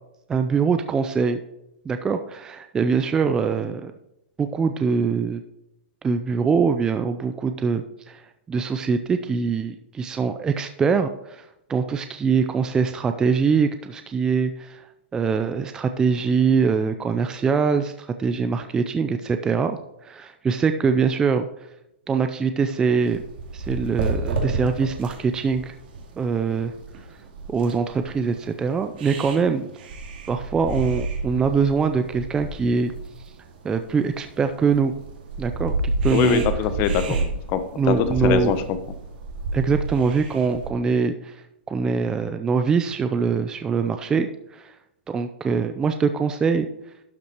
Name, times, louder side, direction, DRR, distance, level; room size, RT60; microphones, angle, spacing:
voice 1, 0.3-1.4 1.9-3.9 4.4-5.4 6.0-8.2 8.5-14.9 15.1-21.5 22.1-23.2 23.5-25.7 26.2-26.7 27.5-29.7 30.3-32.9 33.6-34.9 35.4-36.4 37.1-37.2 37.8-38.5 39.5-41.4 41.7-44.8 45.1-46.7, right 5 dB, 10° right, 8 dB, 0.4 m, -23 dB
sound 1, 23.0-40.7, right 3 dB, 60° right, 2.4 m, -31 dB
voice 2, 36.1-37.9 38.2-38.8, left 9 dB, 35° left, 10 dB, 1.0 m, -23 dB
12.0 x 5.6 x 4.5 m, 0.84 s
hypercardioid pair, 150°, 6 cm